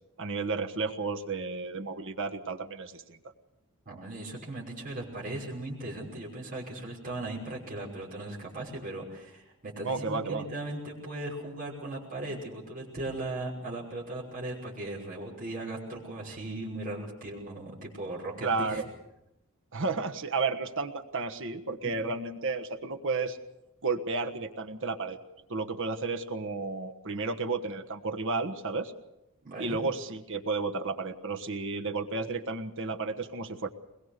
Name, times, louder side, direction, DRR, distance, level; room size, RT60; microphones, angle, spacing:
voice 1, 0.2-3.2 9.8-10.5 18.4-18.9 19.7-23.4 23.8-25.2 25.5-28.9 29.6-33.7, right 3 dB, 60° right, 6 dB, 1.4 m, -32 dB
voice 2, 3.9-18.8 29.4-29.8, right 2 dB, 40° right, -4 dB, 5.8 m, -38 dB
22.5 x 21.0 x 6.7 m, 0.92 s
head